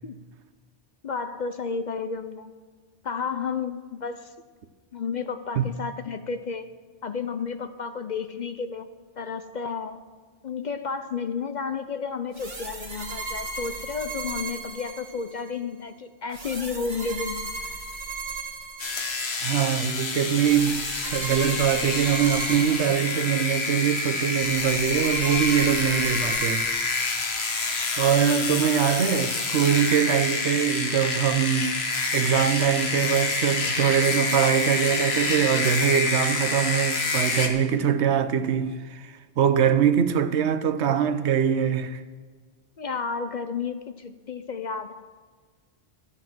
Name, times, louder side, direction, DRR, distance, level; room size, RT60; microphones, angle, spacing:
voice 1, 1.0-2.5 3.0-4.3 4.9-6.7 7.0-8.9 9.2-10.0 10.4-17.5 28.2-28.6 42.8-45.0, left 5 dB, 50° left, 0.6 m, -32 dB
sound 1, 12.3-15.5 16.3-19.4 20.4-23.5 24.4-27.5, right 3 dB, 45° right, 1.6 m, -36 dB
sound 2, 18.8-37.5, left 3 dB, 65° left, 1.5 m, -27 dB
voice 2, 19.4-26.6 28.0-31.8 32.1-42.0, right 8 dB, 80° right, 1.0 m, -23 dB
13.0 x 9.8 x 6.0 m
omnidirectional pair, 1.1 m